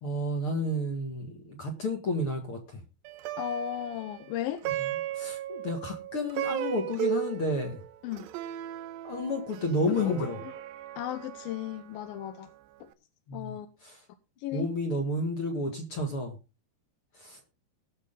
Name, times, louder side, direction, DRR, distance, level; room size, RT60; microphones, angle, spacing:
voice 1, 0.0-2.8 4.8-4.9 5.1-7.8 9.0-10.4 13.3-13.5 13.8-14.0 14.5-16.3 17.2-17.4, left 1 dB, 50° left, 1.7 m, -31 dB
Plucked string instrument, 3.0-12.5, right 12 dB, 75° right, 2.2 m, -36 dB
voice 2, 3.4-4.6 8.0-8.3 9.9-10.6 11.0-12.5 12.8-12.9 13.3-13.7 14.4-14.7, left 11 dB, 80° left, 2.3 m, -35 dB
19.5 x 6.7 x 3.7 m
omnidirectional pair, 4.9 m